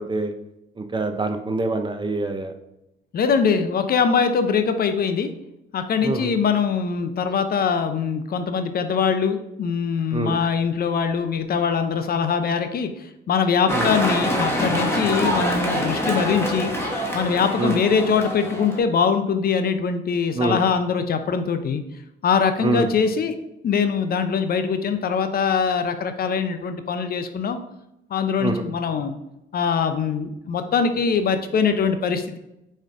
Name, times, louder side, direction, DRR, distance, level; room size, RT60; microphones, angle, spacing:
voice 1, 0.9-2.5 6.0-6.2 10.1-10.3 13.7-13.9 17.6-17.8 20.4-20.6 22.6-22.9 28.4-28.6, right 3 dB, 25° right, 7 dB, 0.5 m, -24 dB
voice 2, 3.1-5.3 5.7-16.7 17.1-21.8 22.2-23.3 23.6-27.6 28.1-29.2 29.5-32.4, left 6 dB, 50° left, 8 dB, 0.5 m, -22 dB
sound 1, 13.7-18.8, equal, 10° left, 1.0 m, -25 dB
4.6 x 4.3 x 2.5 m, 0.88 s
cardioid pair, 90°, 20 cm